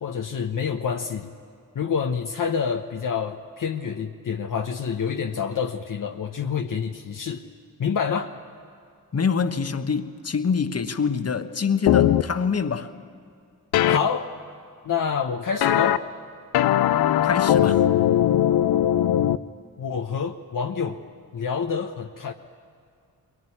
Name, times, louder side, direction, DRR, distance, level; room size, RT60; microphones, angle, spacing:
voice 1, 0.0-1.3 1.7-7.4 7.8-8.3 13.9-14.3 14.8-16.0 19.8-21.0 21.3-22.3, left 6 dB, 55° left, 3 dB, 1.1 m, -27 dB
voice 2, 9.1-12.9 17.2-17.9, left 6 dB, 40° left, 9 dB, 1.3 m, -25 dB
sound 1, 11.9-12.2 13.7-14.0 15.6-16.0 16.5-19.4, left 11 dB, 80° left, 0.7 m, -19 dB
21.5 x 19.5 x 10.0 m, 2.3 s
supercardioid pair, 45°, 38 cm